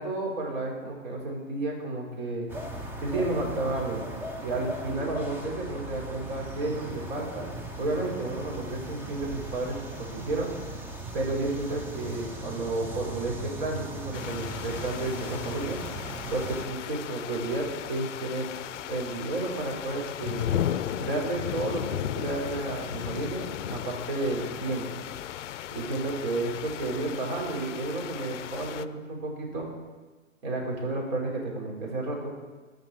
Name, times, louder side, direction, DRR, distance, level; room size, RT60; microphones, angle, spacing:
voice 1, 0.0-2.5 3.0-4.1 4.4-7.5 7.8-10.5 11.1-15.8 16.3-18.5 18.9-20.6 21.0-25.0 25.7-29.7 30.4-32.3, right 2 dB, 50° right, -1 dB, 3.3 m, -32 dB
sound 1, 2.5-16.6, right 1 dB, 5° right, 0.5 m, -38 dB
sound 2, 14.1-28.9, left 11 dB, 65° left, 0.5 m, -36 dB
14.5 x 5.3 x 4.4 m, 1.3 s
hypercardioid pair, 120°, 39 cm